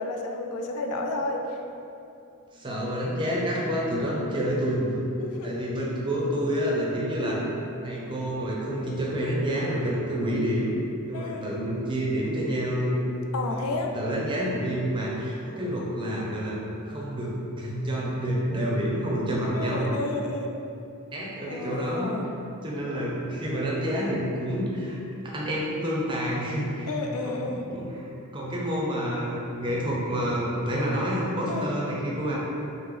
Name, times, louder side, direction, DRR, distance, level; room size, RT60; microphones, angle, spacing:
voice 1, 0.0-1.4 5.2-5.5 7.1-7.3 11.1-11.5 13.3-13.9 19.5-20.5 21.5-22.3 26.9-27.7 31.4-31.7, left 2 dB, 80° left, 3 dB, 0.3 m, -31 dB
voice 2, 2.5-5.1 5.4-7.4 7.8-10.7 11.1-13.0 13.5-13.7 13.9-16.6 16.8-19.9 21.1-22.1 22.6-25.0 25.3-26.9 27.2-32.4, equal, 20° right, -5 dB, 0.5 m, -28 dB
3.1 x 2.0 x 3.6 m, 2.7 s
head